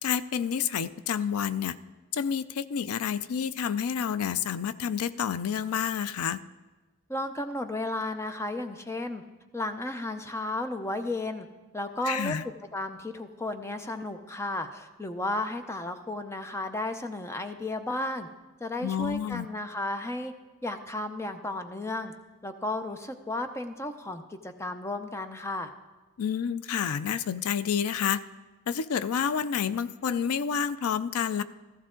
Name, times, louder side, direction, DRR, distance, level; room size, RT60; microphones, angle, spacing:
voice 1, 0.0-1.8 2.1-6.4 12.0-12.4 18.8-19.5 26.2-28.2 28.7-31.4, left 7 dB, 85° left, 15 dB, 0.4 m, -29 dB
voice 2, 7.1-9.2 9.5-11.5 11.7-12.4 12.7-18.3 18.6-20.3 20.6-22.1 22.4-25.7, left 2 dB, 10° left, 8 dB, 0.6 m, -33 dB
14.5 x 14.5 x 3.8 m, 1.2 s
head